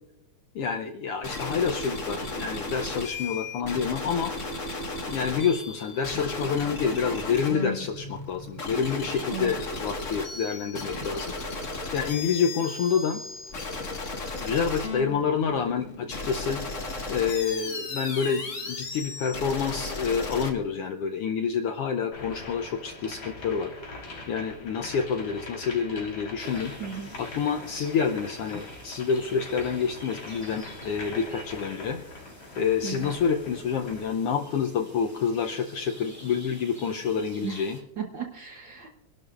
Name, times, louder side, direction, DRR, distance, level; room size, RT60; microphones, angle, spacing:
voice 1, 0.5-4.3 5.1-11.3 11.9-13.2 14.4-16.6 17.1-23.7 24.3-26.7 27.2-32.0 32.6-37.8, left 6 dB, 75° left, 4 dB, 1.3 m, -28 dB
sound 1, 1.2-20.5, left 3 dB, 35° left, 1.4 m, -35 dB
sound 2, 22.1-34.2, left 2 dB, 50° left, 4.1 m, -42 dB
sound 3, 26.4-37.8, equal, 5° right, 1.4 m, -49 dB
voice 2, 26.8-27.1 32.8-33.1 37.4-37.6 38.0-38.9, right 7 dB, 65° right, 2 dB, 1.2 m, -35 dB
25.0 x 12.0 x 2.4 m, 1.0 s
omnidirectional pair, 3.3 m